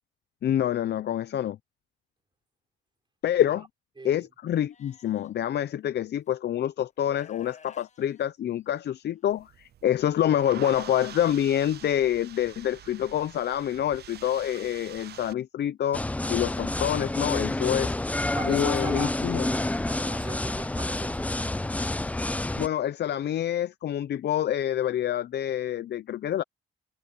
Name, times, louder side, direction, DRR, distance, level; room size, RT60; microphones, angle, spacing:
voice 1, 0.4-1.6 3.2-3.7 4.0-17.9 18.5-19.5 22.6-26.4, left 11 dB, 60° left, 0.7 m, -27 dB
voice 2, 4.0-4.3 18.3-21.3, right 3 dB, 25° right, 4.5 m, -39 dB
Livestock farm animals working animals, 4.7-5.3 6.3-6.4 7.0-9.1, left 6 dB, 35° left, 1.7 m, -54 dB
sound 1, 9.3-15.3, right 11 dB, 55° right, 0.6 m, -46 dB
sound 2, 15.9-22.7, left 2 dB, 5° left, 0.4 m, -29 dB
cardioid pair, 90°, 20 cm